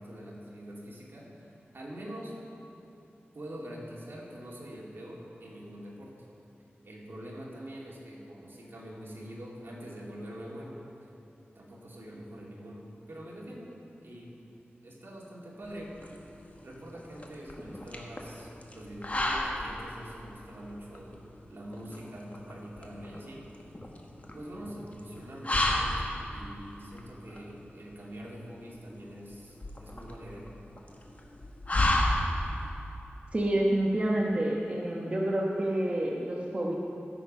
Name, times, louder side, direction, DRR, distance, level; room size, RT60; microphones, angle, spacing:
voice 1, 0.0-2.3 3.3-6.1 6.8-10.8 11.5-13.7 14.0-14.3 14.8-15.9 16.6-23.4 24.3-30.5, equal, 65° right, -4 dB, 2.5 m, -44 dB
sound 1, 15.6-32.7, left 1 dB, 35° left, 1.4 m, -33 dB
voice 2, 33.3-36.7, right 1 dB, 35° right, -3 dB, 1.1 m, -28 dB
14.0 x 7.7 x 5.5 m, 2.9 s
wide cardioid pair, 85°, 4 cm